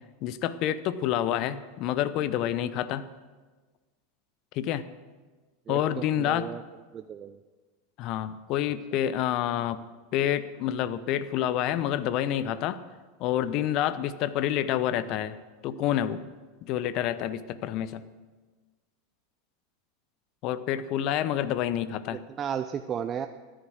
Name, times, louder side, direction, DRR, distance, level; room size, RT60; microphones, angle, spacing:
voice 1, 0.2-3.0 4.5-4.8 5.7-6.5 8.0-9.8 10.1-12.8 13.2-16.2 16.6-18.0 20.4-22.2, left 11 dB, 50° left, 15 dB, 0.7 m, -28 dB
voice 2, 6.2-6.6 6.9-7.4 22.1-23.3, right 8 dB, 35° right, 9 dB, 0.6 m, -34 dB
14.0 x 10.0 x 6.3 m, 1.3 s
hypercardioid pair, 90°, 0 cm